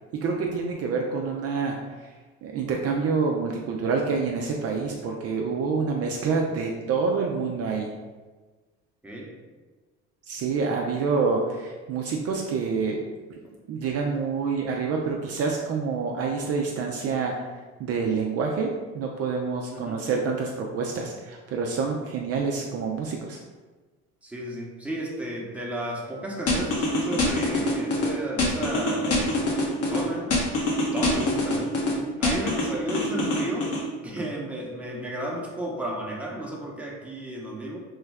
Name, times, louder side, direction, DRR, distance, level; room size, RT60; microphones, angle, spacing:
voice 1, 0.1-2.1 2.4-7.9 10.3-13.0 13.7-17.4 17.8-23.4, right 4 dB, 50° right, 1 dB, 0.4 m, -27 dB
voice 2, 24.2-29.4 29.8-30.3 30.9-37.8, right 1 dB, 5° right, -3 dB, 0.8 m, -33 dB
sound 1, 26.5-28.1 28.4-30.0 30.3-31.9 32.2-33.8, left 2 dB, 45° left, 1.0 m, -24 dB
3.1 x 2.2 x 3.4 m, 1.3 s
supercardioid pair, 75°, 33 cm